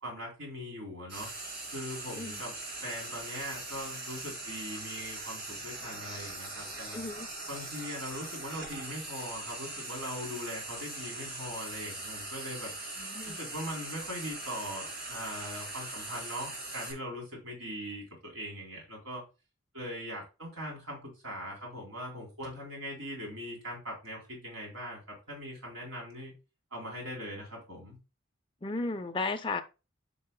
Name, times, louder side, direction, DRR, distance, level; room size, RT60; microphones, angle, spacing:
voice 1, 0.0-1.3 1.7-2.5 2.8-7.0 7.5-12.7 13.2-19.2 19.7-26.3 26.7-28.0, equal, 85° right, 3.5 m, -41 dB
Frying (food), 1.1-16.9, right 2 dB, 50° right, 2.5 m, -41 dB
voice 2, 6.9-7.3 13.0-13.4 28.6-29.6, left 3 dB, 25° left, 0.5 m, -34 dB
9.9 x 5.5 x 2.2 m
head